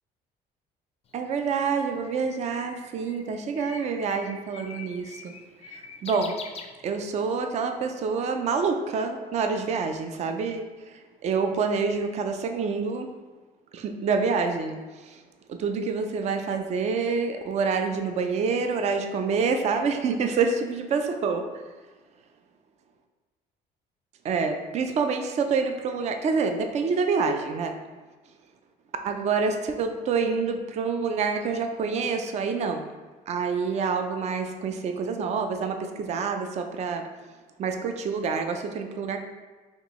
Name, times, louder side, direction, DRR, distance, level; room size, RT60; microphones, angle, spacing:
Bird, 1.1-7.3, left 5 dB, 35° left, 0.4 m, -44 dB
voice 1, 1.1-5.3 5.7-6.3 6.8-13.1 13.7-15.2 15.5-21.4 24.2-27.7 29.0-32.9 33.3-37.1 37.6-39.2, right 5 dB, 40° right, 6 dB, 0.4 m, -27 dB
4.3 x 2.9 x 3.0 m, 1.4 s
cardioid pair, 110°, 17 cm